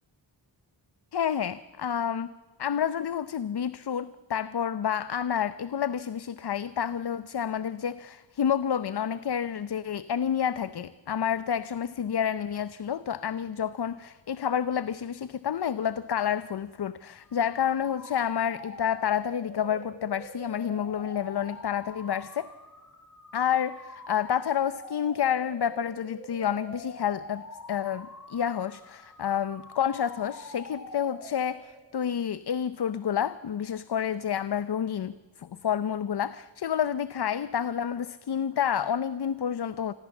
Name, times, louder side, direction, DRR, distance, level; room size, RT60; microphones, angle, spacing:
voice 1, 1.1-2.3 2.6-22.5 23.3-27.4 27.7-39.9, left 8 dB, 60° left, 15 dB, 0.7 m, -29 dB
sound 1, 17.2-31.9, left 2 dB, 40° left, 3.5 m, -45 dB
28.0 x 21.0 x 7.2 m, 1.4 s
wide cardioid pair, 80°, 45 cm